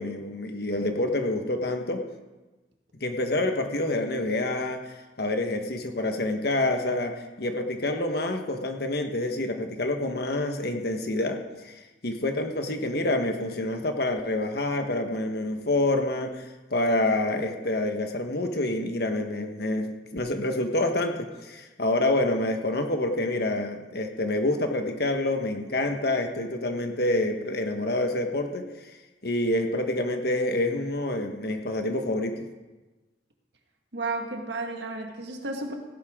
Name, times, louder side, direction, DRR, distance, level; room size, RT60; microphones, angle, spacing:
voice 1, 0.0-2.0 3.0-4.8 5.2-11.7 12.0-29.0 29.2-32.4, left 2 dB, 60° left, 5 dB, 1.4 m, -27 dB
voice 2, 33.9-35.7, right 3 dB, 70° right, 2 dB, 1.8 m, -32 dB
17.0 x 11.5 x 3.7 m, 1.2 s
head